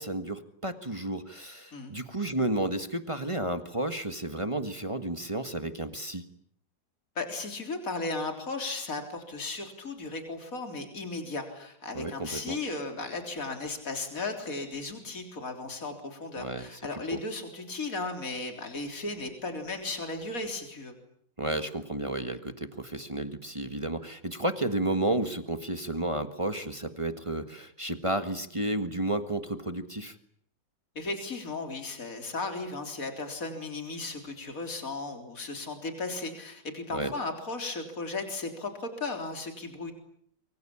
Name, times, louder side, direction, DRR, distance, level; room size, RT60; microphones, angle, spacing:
voice 1, 0.0-6.2 11.9-12.6 16.4-16.8 21.4-30.1 36.9-37.1, right 1 dB, 20° right, 8 dB, 1.5 m, -32 dB
voice 2, 7.2-20.9 31.0-39.9, left 3 dB, 50° left, 5 dB, 4.1 m, -35 dB
26.0 x 24.0 x 8.8 m, 0.68 s
omnidirectional pair, 1.9 m